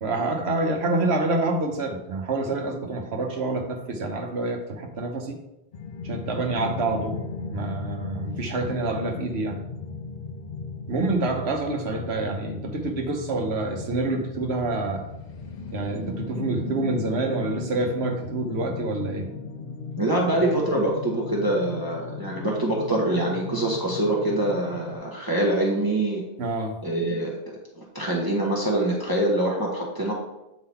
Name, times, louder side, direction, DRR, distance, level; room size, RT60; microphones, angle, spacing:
voice 1, 0.0-5.4 6.0-7.2 7.5-9.6 10.9-15.0 15.7-19.3 26.4-26.7, right 2 dB, 90° right, 3 dB, 1.3 m, -27 dB
sound 1, 5.7-25.0, left 3 dB, 65° left, 0.9 m, -36 dB
voice 2, 20.0-26.2 26.8-27.3 27.8-30.1, right 1 dB, 20° right, -3 dB, 1.1 m, -24 dB
8.5 x 3.8 x 4.2 m, 0.92 s
omnidirectional pair, 1.1 m